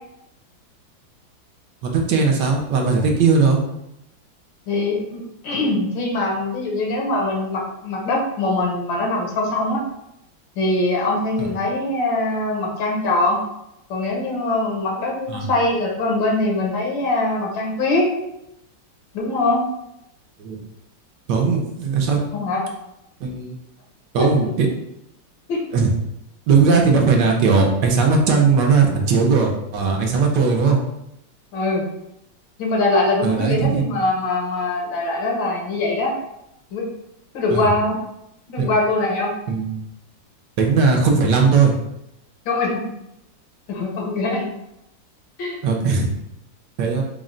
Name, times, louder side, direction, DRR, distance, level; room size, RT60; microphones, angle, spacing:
voice 1, 1.8-3.6 15.3-15.5 20.4-20.6 21.3-22.2 23.2-23.6 24.1-24.7 25.7-25.9 26.5-30.8 33.2-34.0 37.5-37.7 38.6-38.7 39.5-39.8 40.6-41.7 45.6-46.1 46.8-47.0, right 5 dB, 75° right, 1 dB, 1.2 m, -18 dB
voice 2, 4.7-9.8 10.6-13.4 13.9-18.1 19.1-19.6 22.3-22.7 24.2-24.3 25.5-25.6 31.5-31.9 32.6-36.2 36.7-36.9 37.3-38.0 38.5-39.3 42.4-42.9 43.7-44.5 45.4-45.6, left 2 dB, 80° left, -1 dB, 1.6 m, -22 dB
4.2 x 2.1 x 3.7 m, 0.82 s
omnidirectional pair, 2.0 m